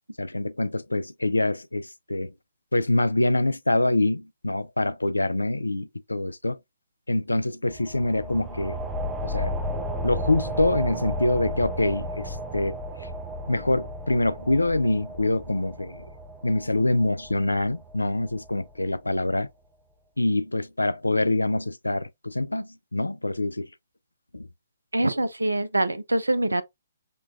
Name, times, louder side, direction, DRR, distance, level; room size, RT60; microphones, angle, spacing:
voice 1, 0.2-2.3 2.7-6.6 7.1-8.8 9.2-9.5 10.0-12.8 13.5-16.0 16.4-19.5 20.2-23.7 24.3-24.5, left 2 dB, 80° left, 0.3 m, -25 dB
sound 1, 7.6-18.9, equal, 15° right, 0.5 m, -34 dB
voice 2, 24.9-26.6, right 1 dB, 80° right, 0.4 m, -24 dB
5.1 x 2.2 x 2.4 m
figure-of-eight pair, 125°, 0 cm